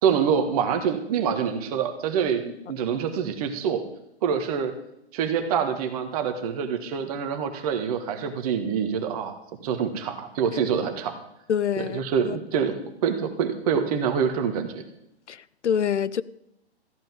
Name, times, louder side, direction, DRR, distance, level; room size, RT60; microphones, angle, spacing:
voice 1, 0.0-3.8 4.2-4.7 5.1-11.2 11.8-12.8 13.0-14.8, right 7 dB, 35° right, 1.7 m, -26 dB
voice 2, 11.5-12.4 15.3-16.2, left 8 dB, 85° left, 0.6 m, -26 dB
14.5 x 5.3 x 9.2 m
hypercardioid pair, 140°, 34 cm